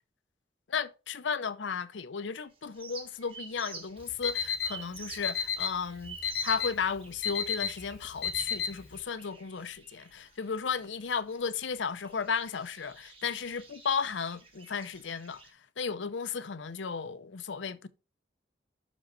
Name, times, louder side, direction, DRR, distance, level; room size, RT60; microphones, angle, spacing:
voice 1, 0.7-17.9, left 6 dB, 85° left, 0.6 m, -34 dB
sound 1, 2.4-15.5, right 4 dB, 30° right, 1.4 m, -50 dB
Alarm, 4.0-9.0, left 7 dB, 55° left, 1.0 m, -33 dB
6.3 x 5.1 x 5.5 m
head